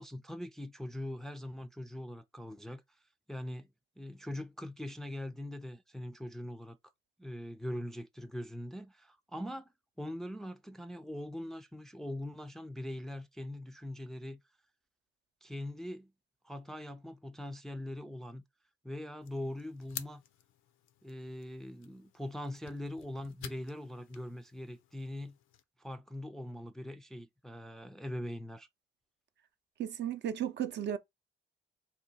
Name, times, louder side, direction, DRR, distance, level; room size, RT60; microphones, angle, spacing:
voice 1, 0.0-2.8 3.3-3.7 4.0-6.8 7.2-9.7 10.0-14.4 15.4-16.1 16.4-18.4 18.8-20.2 21.0-25.4 25.8-28.7, left 1 dB, ahead, 0.3 m, -42 dB
sound 1, 19.2-25.6, left 10 dB, 85° left, 0.5 m, -51 dB
voice 2, 29.8-31.0, right 10 dB, 60° right, 0.5 m, -34 dB
2.8 x 2.3 x 4.0 m
cardioid pair, 90°, 20 cm